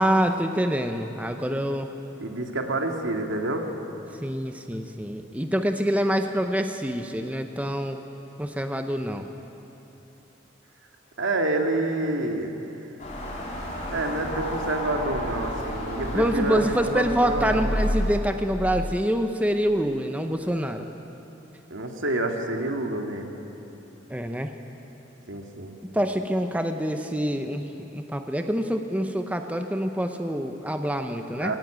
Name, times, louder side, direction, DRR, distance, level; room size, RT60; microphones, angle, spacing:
voice 1, 0.0-1.9 4.2-8.0 8.4-9.3 16.1-20.9 24.1-24.5 25.9-31.5, equal, 5° right, 6 dB, 0.7 m, -26 dB
voice 2, 2.2-3.7 11.2-12.7 13.9-17.6 21.7-23.3 25.3-25.7 31.4-31.6, right 2 dB, 85° right, 3 dB, 2.1 m, -28 dB
sound 1, 13.0-18.1, equal, 40° left, 4.0 m, -30 dB
19.5 x 17.5 x 8.9 m, 3.0 s
head